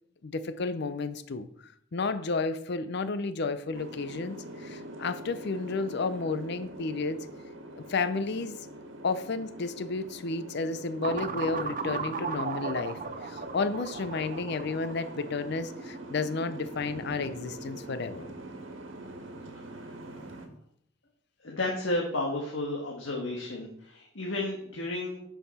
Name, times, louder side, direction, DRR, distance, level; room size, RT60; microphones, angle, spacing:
voice 1, 0.2-7.3 7.8-8.6 9.0-18.3, left 3 dB, 60° left, 12 dB, 0.6 m, -32 dB
Boat Water vehicle, 3.7-20.5, right 1 dB, 90° right, 1.5 m, -44 dB
sound 1, 11.0-16.1, right 4 dB, 45° right, 0.7 m, -36 dB
voice 2, 21.4-25.2, left 2 dB, 85° left, -1 dB, 1.6 m, -32 dB
10.5 x 5.8 x 4.2 m, 0.67 s
head